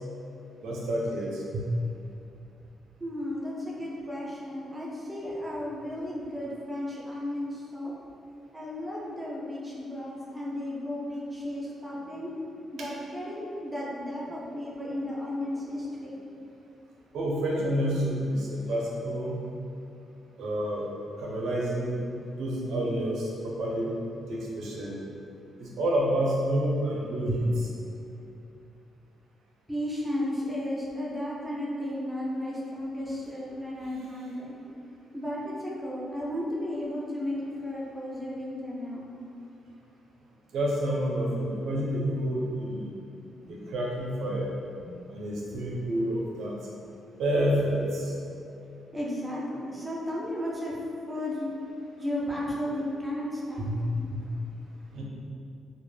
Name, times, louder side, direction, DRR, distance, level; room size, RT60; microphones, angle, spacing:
voice 1, 0.6-1.7 17.1-19.4 20.4-20.8 21.2-23.9 24.3-24.9 25.6-27.7 40.5-42.9 43.5-44.5 45.1-46.5 47.2-48.1 53.6-53.8 54.1-54.2 54.9-55.0, right 1 dB, 70° right, -3 dB, 0.4 m, -29 dB
voice 2, 3.0-7.9 8.5-16.4 29.7-34.5 35.1-39.1 43.4-43.6 44.8-44.9 48.9-50.7 51.1-51.5 52.0-53.7, left 1 dB, 5° right, -6 dB, 0.4 m, -34 dB
2.1 x 2.0 x 3.1 m, 2.5 s
cardioid pair, 170°, 0 cm